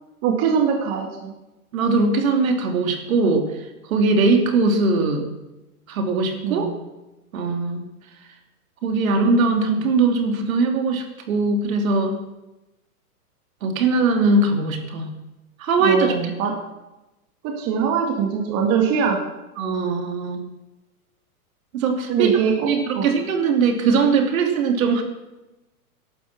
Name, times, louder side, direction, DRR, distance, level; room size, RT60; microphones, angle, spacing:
voice 1, 0.2-1.3 6.4-6.7 15.8-16.6 17.4-19.3 22.1-23.1, right 6 dB, 30° right, 2 dB, 2.4 m, -22 dB
voice 2, 1.7-3.5 3.9-5.3 5.9-6.7 7.3-7.8 8.8-12.2 13.6-15.1 15.6-16.2 19.6-20.4 21.7-22.3 22.6-25.0, right 3 dB, 65° right, 4 dB, 3.1 m, -20 dB
15.0 x 12.0 x 6.2 m, 1.0 s
hypercardioid pair, 145°, 45 cm